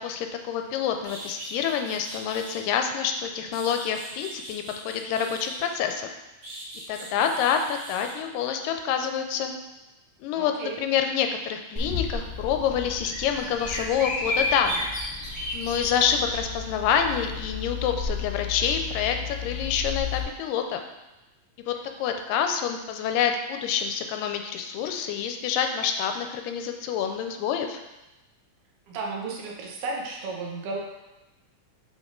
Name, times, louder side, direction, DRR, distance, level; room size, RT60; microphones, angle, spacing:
voice 1, 0.0-6.1 6.9-9.5 10.2-14.9 15.5-20.8 21.6-27.8, left 8 dB, 85° left, 5 dB, 2.2 m, -27 dB
sound 1, 0.6-0.7 1.0-2.6 3.2-5.9 6.4-8.2, right 1 dB, 55° right, 2.5 m, -42 dB
voice 2, 10.3-10.8 28.9-30.8, right 3 dB, 80° right, -2 dB, 1.3 m, -34 dB
Bird vocalization bird call bird song, 11.7-20.2, left 4 dB, 25° right, 0.6 m, -32 dB
5.9 x 5.3 x 3.7 m, 1.0 s
omnidirectional pair, 3.8 m